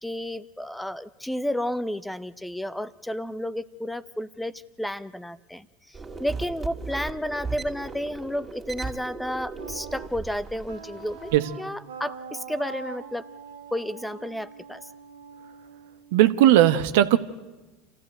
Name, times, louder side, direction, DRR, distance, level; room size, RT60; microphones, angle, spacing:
voice 1, 0.0-5.7 6.2-11.3 11.6-13.3 13.7-14.8, equal, 5° left, 15 dB, 0.8 m, -31 dB
sound 1, 5.9-11.4, right 4 dB, 20° right, 2.6 m, -37 dB
Wind instrument woodwind instrument, 9.6-16.5, right 5 dB, 90° right, 2.0 m, -43 dB
voice 2, 16.1-17.2, right 13 dB, 70° right, 11 dB, 1.0 m, -17 dB
27.0 x 15.0 x 9.1 m, 1.1 s
hypercardioid pair, 85°, 0 cm